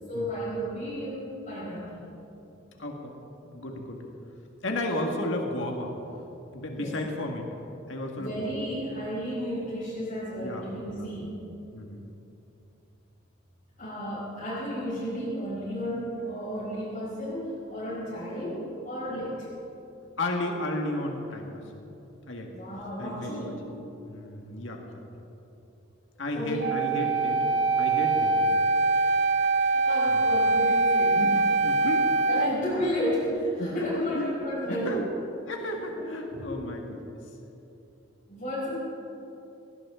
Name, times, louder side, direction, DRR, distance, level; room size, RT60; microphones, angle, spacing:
voice 1, 0.1-2.0 6.8-6.9 8.2-11.3 13.8-19.5 22.5-23.6 26.3-26.8 28.9-29.1 29.6-31.2 32.3-34.9 35.7-36.5 38.3-38.7, equal, 40° left, -11 dB, 4.8 m, -33 dB
voice 2, 2.8-3.1 3.4-4.0 4.6-5.9 6.5-7.5 7.9-8.5 10.4-11.1 11.7-12.0 20.2-21.6 22.3-22.5 23.0-23.5 24.0-24.8 25.2-25.3 26.2-27.5 27.8-28.5 30.1-30.2 31.1-32.5 33.6-35.0 35.5-37.2, left 1 dB, 70° left, 1 dB, 1.8 m, -33 dB
Wind instrument woodwind instrument, 26.6-32.5, right 3 dB, 60° right, 0.5 m, -23 dB
19.5 x 18.0 x 3.7 m, 2.9 s
head